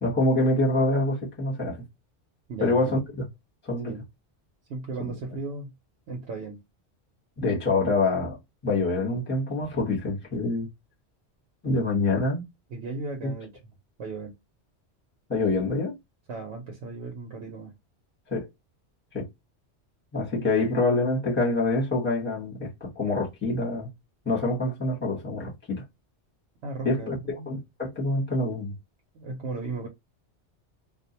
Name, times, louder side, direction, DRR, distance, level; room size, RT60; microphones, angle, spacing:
voice 1, 0.0-1.8 2.6-3.3 3.6-4.0 5.0-5.1 7.4-8.4 8.6-10.7 11.6-12.4 13.2-13.3 15.3-16.0 18.3-18.5 19.1-19.3 20.1-23.9 24.2-25.8 26.8-28.7, left 2 dB, 10° left, 0.9 m, -26 dB
voice 2, 2.5-2.9 3.9-4.0 4.7-5.7 6.1-6.6 12.7-13.5 14.0-14.3 16.3-17.7 26.6-27.5 29.1-29.9, right 3 dB, 70° right, 0.9 m, -36 dB
2.4 x 2.1 x 2.7 m
omnidirectional pair, 1.2 m